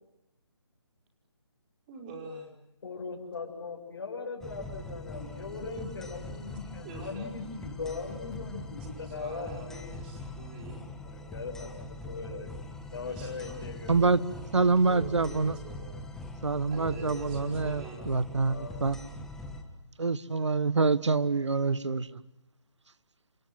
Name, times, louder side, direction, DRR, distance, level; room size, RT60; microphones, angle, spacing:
voice 1, 1.9-2.5 6.8-7.4 9.0-10.9 13.0-13.8 14.8-15.9 16.7-18.1, right 3 dB, 20° right, 3 dB, 5.0 m, -45 dB
voice 2, 2.8-10.0 11.0-12.6 12.9-14.1 16.7-17.2 17.5-18.1 18.5-18.8, left 4 dB, 50° left, -1 dB, 6.9 m, -40 dB
sound 1, 4.4-19.6, left 2 dB, 5° left, 1.5 m, -42 dB
voice 3, 13.9-14.2 14.5-15.5 16.4-19.0 20.0-22.2, right 4 dB, 85° right, 17 dB, 1.5 m, -26 dB
28.5 x 26.0 x 7.8 m, 0.88 s
hypercardioid pair, 165°, 15 cm